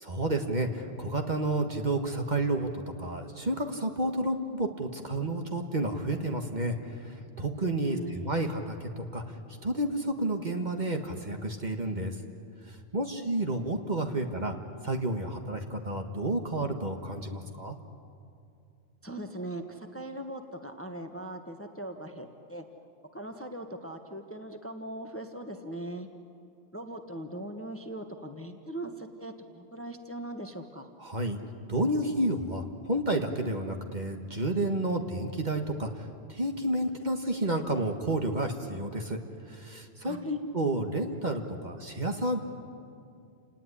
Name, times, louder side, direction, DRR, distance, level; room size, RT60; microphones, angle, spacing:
voice 1, 0.0-2.7 3.0-9.4 9.6-12.2 12.7-14.6 14.8-17.7 31.0-31.4 31.7-39.2 39.5-42.4, right 1 dB, 40° right, 4 dB, 1.6 m, -30 dB
voice 2, 7.8-8.4 19.0-22.6 23.1-26.1 26.7-30.9 40.0-40.4, right 1 dB, 10° left, 5 dB, 1.3 m, -40 dB
29.0 x 18.5 x 9.9 m, 2.5 s
omnidirectional pair, 1.3 m